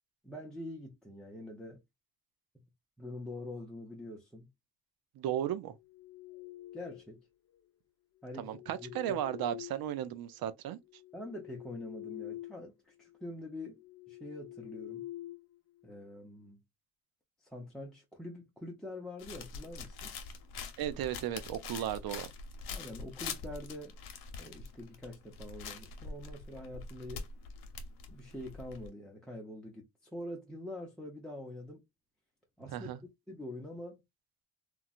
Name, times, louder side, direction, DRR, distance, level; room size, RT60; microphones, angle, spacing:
voice 1, 0.2-1.8 3.0-4.5 6.7-7.2 8.2-9.2 11.1-15.0 15.8-16.6 17.4-20.1 22.7-24.0 24.4-27.2 28.1-31.8 32.6-32.9 33.3-34.0, left 1 dB, ahead, 0.6 m, -45 dB
voice 2, 5.2-5.7 8.4-10.8 20.8-22.3 32.7-33.0, right 11 dB, 60° right, 0.6 m, -35 dB
sound 1, 5.7-7.2 8.2-10.3 10.8-12.7 13.0-13.2 13.7-16.1, left 15 dB, 40° left, 0.4 m, -47 dB
sound 2, 19.2-28.9, left 5 dB, 65° left, 0.8 m, -44 dB
3.0 x 2.2 x 2.4 m
cardioid pair, 95°, 40 cm